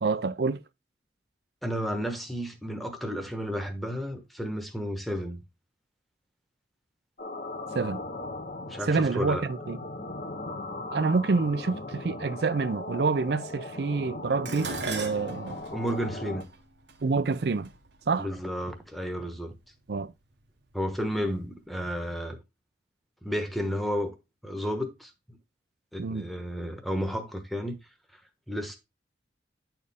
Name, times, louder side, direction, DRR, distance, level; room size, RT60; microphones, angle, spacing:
voice 1, 0.0-0.6 7.7-8.0 8.9-9.8 10.9-15.6 17.0-17.7 18.1-18.3 19.9-20.1 26.0-26.3, right 4 dB, 65° right, 0.5 m, -27 dB
voice 2, 1.6-5.4 8.7-9.4 15.7-16.5 18.2-19.5 20.7-22.4 23.2-24.1 24.4-25.1 25.9-27.8 28.5-28.8, equal, ahead, 1.1 m, -32 dB
sound 1, 7.2-16.4, left 2 dB, 50° left, 0.9 m, -38 dB
Dishes pots and pans, 14.5-18.8 19.7-20.1 20.5-21.3 21.6-21.7, right 4 dB, 80° right, 1.1 m, -40 dB
9.7 x 4.4 x 3.5 m
head